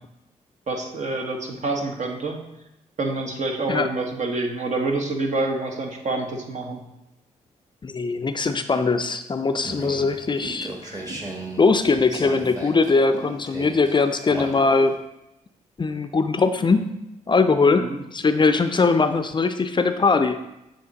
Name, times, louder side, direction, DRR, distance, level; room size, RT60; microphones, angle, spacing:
voice 1, 0.7-2.4 3.0-6.8 17.7-18.0, right 2 dB, 55° right, 2 dB, 1.1 m, -27 dB
voice 2, 7.8-11.1 11.6-15.0 15.8-16.9 17.3-20.4, left 4 dB, 30° left, 9 dB, 0.4 m, -21 dB
sound 1, 9.6-15.0, right 1 dB, 25° right, 1.4 m, -36 dB
7.7 x 3.0 x 4.0 m, 0.90 s
supercardioid pair, 50°, 15 cm